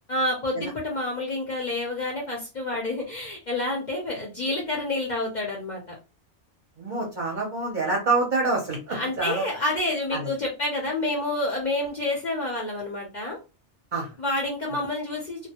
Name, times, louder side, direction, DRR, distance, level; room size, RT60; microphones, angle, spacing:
voice 1, 0.1-6.0 8.9-13.4 14.2-15.5, left 2 dB, 50° left, -2 dB, 0.6 m, -28 dB
voice 2, 6.8-9.4 10.1-10.3 13.9-14.1, right 3 dB, 50° right, 0 dB, 0.7 m, -26 dB
2.1 x 2.1 x 2.8 m, 0.29 s
omnidirectional pair, 1.3 m